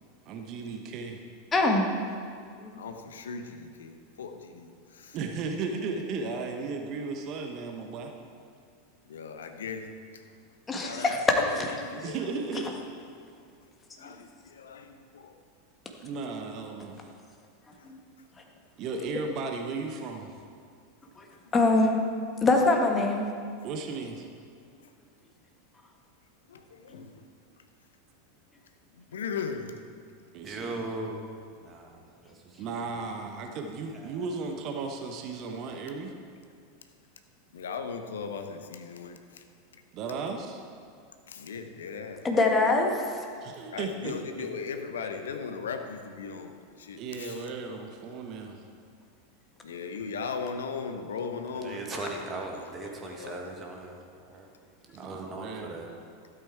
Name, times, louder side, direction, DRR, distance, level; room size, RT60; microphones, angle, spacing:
voice 1, 0.3-1.2 5.1-8.1 11.9-12.7 16.0-17.1 18.8-20.3 23.6-24.3 30.3-30.8 32.6-36.1 39.9-40.6 43.4-44.5 47.0-48.6 54.9-55.8, right 4 dB, 40° right, 4 dB, 1.0 m, -35 dB
voice 2, 1.5-1.9 2.6-2.7 10.7-11.2 11.6-11.7 17.8-18.0 21.2-21.3 21.5-22.0 22.4-23.3 26.9-27.0 42.2-43.0, left 2 dB, 20° left, 2 dB, 1.5 m, -23 dB
voice 3, 2.7-5.2 9.0-10.2 10.8-12.3 14.0-15.3 17.8-17.9 21.4-21.9 24.8-24.9 26.5-27.2 28.9-29.8 30.7-30.8 37.5-39.4 41.3-42.3 43.7-47.4 49.6-52.2 52.5-53.4, left 5 dB, 70° left, 7 dB, 0.9 m, -38 dB
voice 4, 30.4-31.2 31.6-32.0 32.3-33.0 33.9-34.2 51.6-54.0 54.2-54.5 55.0-55.9, right 2 dB, 25° right, 1 dB, 1.8 m, -38 dB
12.5 x 8.2 x 4.6 m, 2.3 s
figure-of-eight pair, 85°, 0 cm